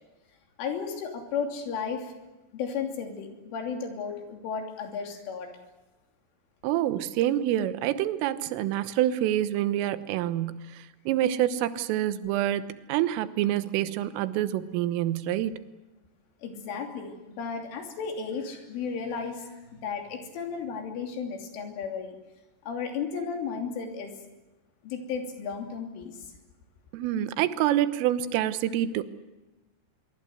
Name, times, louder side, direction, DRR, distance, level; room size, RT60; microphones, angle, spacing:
voice 1, 0.6-2.1 2.5-5.5 16.4-22.2 22.7-24.1 24.8-26.2, left 6 dB, 75° left, 3 dB, 5.5 m, -34 dB
voice 2, 6.6-15.5 26.9-29.0, right 12 dB, 90° right, 13 dB, 3.6 m, -27 dB
24.5 x 23.5 x 8.0 m, 1.1 s
omnidirectional pair, 5.7 m